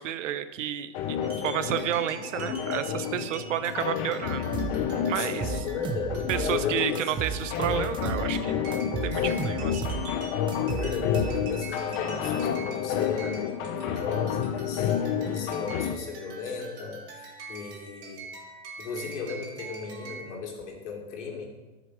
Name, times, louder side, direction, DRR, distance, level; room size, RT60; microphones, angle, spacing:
voice 1, 0.0-4.5 5.1-5.7 6.3-8.7 9.0-9.7, right 10 dB, 75° right, 12 dB, 0.9 m, -31 dB
sound 1, 0.9-15.9, left 8 dB, 35° left, 0.8 m, -30 dB
sound 2, 1.2-20.3, right 3 dB, 40° right, 3.2 m, -44 dB
sound 3, 4.5-4.8 5.2-6.5 6.9-8.3 8.7-10.1 10.5-11.7, right 6 dB, 15° right, 0.5 m, -33 dB
voice 2, 5.1-7.3 9.1-9.4 10.7-18.3 18.8-21.5, left 5 dB, 65° left, 0 dB, 2.9 m, -36 dB
12.0 x 6.7 x 4.8 m, 1.1 s
hypercardioid pair, 140°, 38 cm